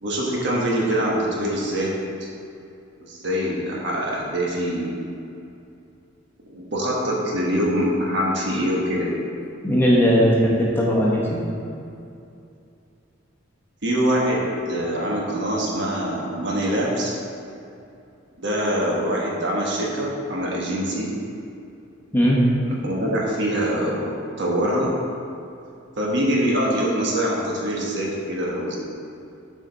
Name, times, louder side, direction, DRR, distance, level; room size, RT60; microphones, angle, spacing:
voice 1, 0.0-1.9 3.0-5.0 6.4-9.2 13.8-17.1 18.4-21.1 22.6-25.0 26.0-28.8, equal, 65° right, -3 dB, 1.3 m, -24 dB
voice 2, 9.6-11.4 22.1-22.4, equal, 10° left, -5 dB, 1.1 m, -18 dB
8.3 x 5.0 x 4.1 m, 2.6 s
head